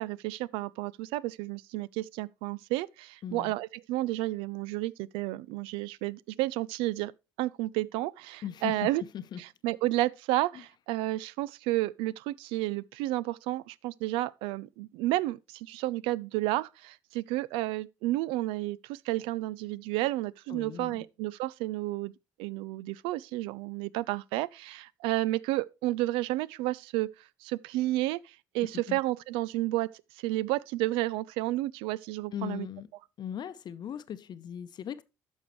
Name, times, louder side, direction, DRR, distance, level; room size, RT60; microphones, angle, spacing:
voice 1, 0.0-7.1 7.4-9.0 9.6-22.1 22.4-27.1 27.4-32.7, right 17 dB, 75° right, 0.4 m, -31 dB
voice 2, 3.2-3.5 8.4-9.4 20.5-21.1 28.6-29.0 32.3-32.9 33.2-35.0, left 9 dB, 50° left, 0.7 m, -38 dB
11.5 x 6.4 x 3.1 m
hypercardioid pair, 60°, 9 cm